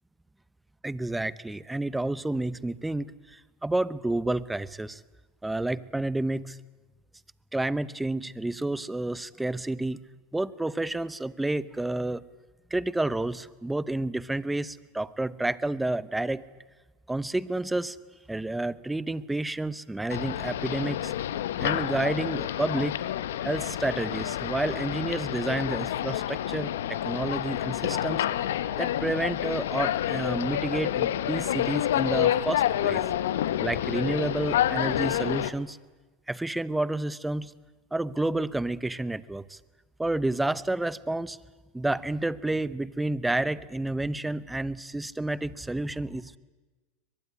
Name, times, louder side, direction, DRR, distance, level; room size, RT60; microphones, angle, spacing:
voice 1, 0.8-5.0 5.4-6.6 7.5-10.0 10.3-12.2 12.7-16.4 17.1-18.0 18.3-21.1 21.6-23.0 23.4-28.2 28.8-33.0 33.6-35.8 36.3-37.5 37.9-39.6 40.0-41.4 41.7-46.4, right 2 dB, 10° right, 18 dB, 0.9 m, -30 dB
sound 1, 20.1-35.5, left 11 dB, 85° left, 1.0 m, -28 dB
23.0 x 21.0 x 9.8 m, 1.3 s
hypercardioid pair, 105°, 0 cm